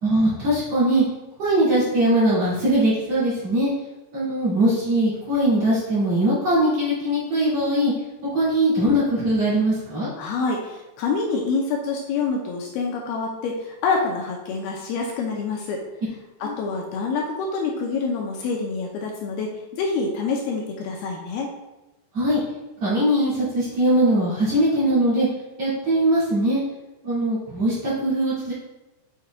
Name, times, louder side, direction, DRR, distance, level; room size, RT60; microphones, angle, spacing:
voice 1, 0.0-1.0 1.4-3.7 4.1-7.9 8.3-10.1 16.4-16.5 22.1-22.4 22.8-25.3 25.6-26.6 27.0-28.5, right 1 dB, 45° right, -10 dB, 2.7 m, -21 dB
voice 2, 10.2-15.8 16.4-21.5, left 4 dB, 80° left, 0 dB, 2.4 m, -26 dB
6.8 x 6.4 x 2.3 m, 1.0 s
omnidirectional pair, 4.7 m